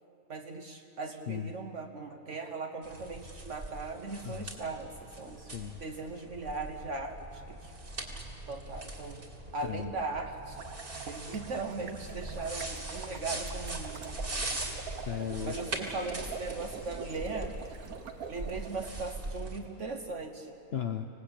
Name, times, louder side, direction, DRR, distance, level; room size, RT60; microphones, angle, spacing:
voice 1, 0.3-5.4 5.8-7.7 8.5-9.3 9.5-10.6 11.1-14.2 15.4-17.6 18.3-20.6, right 3 dB, 60° right, 4 dB, 1.4 m, -38 dB
sound 1, 2.8-19.6, right 2 dB, 40° right, 2.8 m, -41 dB
voice 2, 5.4-5.8 9.6-9.9 15.1-15.6 20.7-21.1, left 9 dB, 50° left, 6 dB, 0.9 m, -36 dB
sound 2, 10.6-18.9, right 6 dB, 85° right, 1.6 m, -45 dB
26.0 x 18.5 x 8.6 m, 3.0 s
omnidirectional pair, 1.5 m